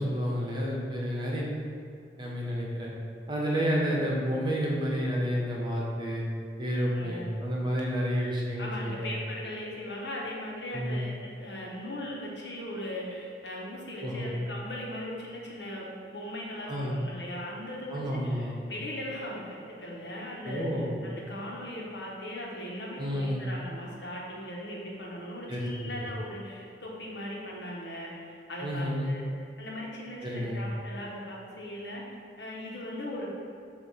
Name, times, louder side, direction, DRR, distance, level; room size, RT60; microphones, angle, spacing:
voice 1, 0.0-1.5 2.2-2.9 3.3-6.2 6.6-9.1 10.7-11.0 14.0-14.4 16.7-17.0 17.9-18.6 20.4-21.0 23.0-23.5 25.5-26.0 28.6-29.1 30.2-30.6, equal, 25° right, -4 dB, 1.1 m, -30 dB
voice 2, 6.9-7.3 8.6-29.2 29.6-32.0 32.4-33.3, left 1 dB, 70° left, -3 dB, 1.3 m, -39 dB
7.5 x 2.8 x 5.6 m, 2.4 s
head